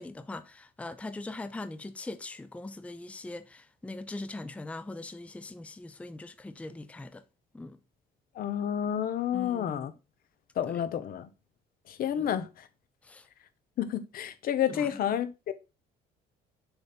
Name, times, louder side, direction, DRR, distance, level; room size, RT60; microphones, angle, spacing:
voice 1, 0.0-7.2 7.5-7.8 9.3-9.9 10.7-10.8 12.2-12.3 13.0-13.3 14.7-14.9, left 2 dB, 10° left, 0.5 m, -41 dB
voice 2, 8.4-9.9 10.6-11.3 11.9-12.5 13.8-15.5, left 10 dB, 60° left, 1.0 m, -30 dB
6.7 x 3.9 x 4.4 m
cardioid pair, 110°, 17 cm